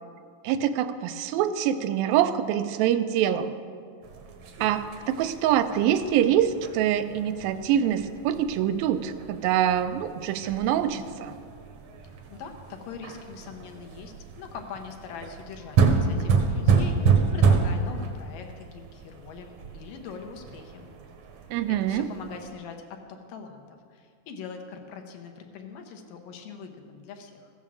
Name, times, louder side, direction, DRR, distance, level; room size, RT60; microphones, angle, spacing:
voice 1, 0.4-3.6 4.6-11.3 21.5-22.1, right 10 dB, 85° right, 10 dB, 2.4 m, -25 dB
sound 1, 4.0-22.5, right 5 dB, 65° right, 1.7 m, -29 dB
voice 2, 12.0-20.9 21.7-23.6 23.9-27.5, left 6 dB, 75° left, 4 dB, 2.6 m, -42 dB
14.5 x 7.3 x 7.3 m, 2.1 s
omnidirectional pair, 4.1 m